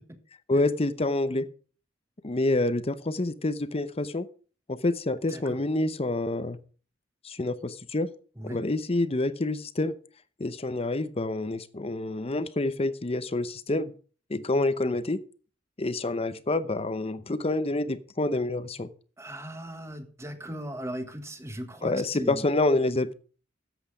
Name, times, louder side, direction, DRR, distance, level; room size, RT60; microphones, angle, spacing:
voice 1, 0.5-1.5 2.2-4.3 4.7-6.6 7.2-8.1 8.4-9.9 10.4-13.9 14.3-15.2 15.8-18.9 21.8-23.1, left 2 dB, 35° left, 14 dB, 0.8 m, -27 dB
voice 2, 19.2-22.4, right 1 dB, 15° right, 8 dB, 1.5 m, -38 dB
13.0 x 8.0 x 5.0 m, 0.40 s
head